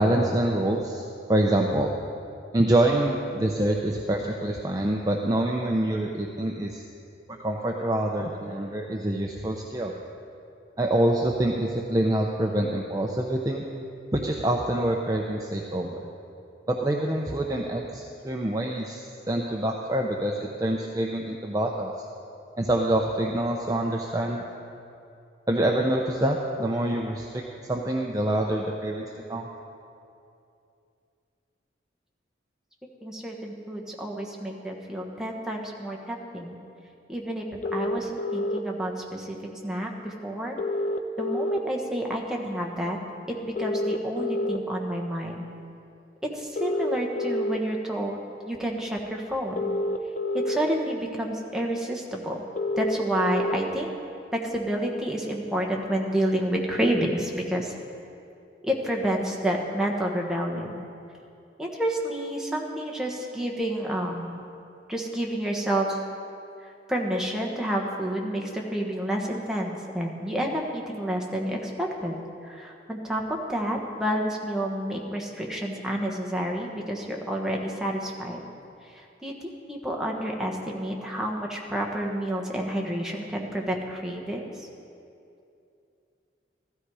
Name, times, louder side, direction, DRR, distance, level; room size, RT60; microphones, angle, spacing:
voice 1, 0.0-1.9 2.5-6.8 7.3-9.9 10.8-13.6 14.1-16.0 16.7-21.9 22.6-24.4 25.5-29.5, right 1 dB, 20° right, 0 dB, 0.7 m, -26 dB
voice 2, 33.0-36.6 37.1-39.4 39.6-40.6 41.2-43.0 43.3-45.4 46.3-49.7 50.3-52.4 52.8-53.9 54.3-57.7 58.6-60.9 61.6-64.4 64.9-66.0 66.9-72.1 72.4-78.4 78.9-79.3 79.7-84.5, right 1 dB, 5° right, -1 dB, 1.3 m, -29 dB
sound 1, 37.6-38.6 40.6-41.6 43.6-44.6 46.6-47.6 49.6-50.6 52.6-53.6, left 1 dB, 45° left, 0.6 m, -28 dB
15.0 x 13.0 x 4.8 m, 2.6 s
head